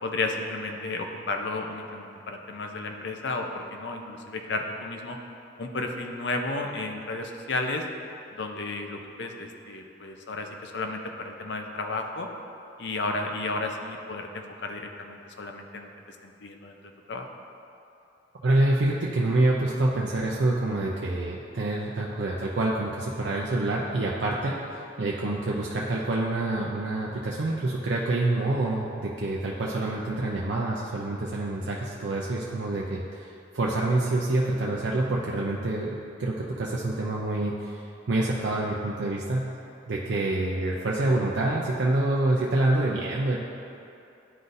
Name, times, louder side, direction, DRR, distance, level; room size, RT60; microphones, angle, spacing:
voice 1, 0.0-5.2 5.6-7.8 8.3-12.3 12.8-16.8 17.1-17.3, left 2 dB, 65° left, 4 dB, 0.6 m, -33 dB
voice 2, 18.4-24.6 25.0-39.5 39.9-43.4, right 2 dB, 70° right, -3 dB, 0.5 m, -27 dB
11.0 x 4.0 x 2.6 m, 2.6 s
head